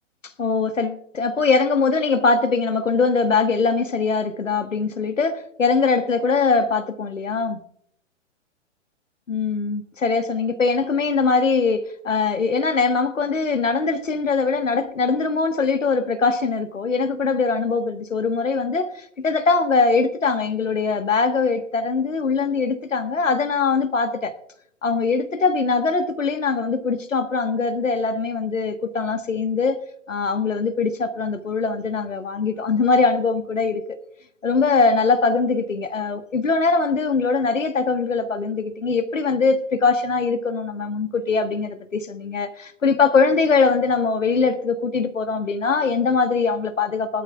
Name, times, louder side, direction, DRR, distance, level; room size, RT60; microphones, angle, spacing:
voice 1, 0.4-7.6 9.3-24.3 24.8-29.8 30.1-33.8 34.4-47.2, left 4 dB, 80° left, 1.3 m, -22 dB
20.0 x 12.5 x 2.3 m
figure-of-eight pair, 115°, 38 cm